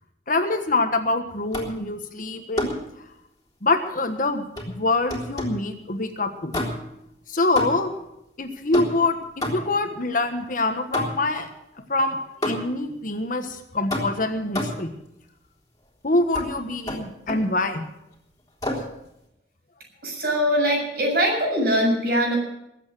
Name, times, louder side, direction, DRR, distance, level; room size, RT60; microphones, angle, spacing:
voice 1, 0.3-2.7 3.6-6.6 7.3-7.9 8.4-11.5 11.9-14.9 16.0-17.8, left 2 dB, 50° left, 7 dB, 1.4 m, -25 dB
sound 1, 1.5-1.9 2.6-2.9 4.6-5.7 6.5-7.0 7.6-8.0 8.7-9.9 10.9-11.4 12.4-12.9 13.9-14.9 16.3-16.5 16.9-17.5 18.6-19.0, left 1 dB, 20° left, 3.5 m, -30 dB
voice 2, 20.0-22.4, equal, 60° right, 0 dB, 6.9 m, -22 dB
21.5 x 8.3 x 6.4 m, 0.82 s
head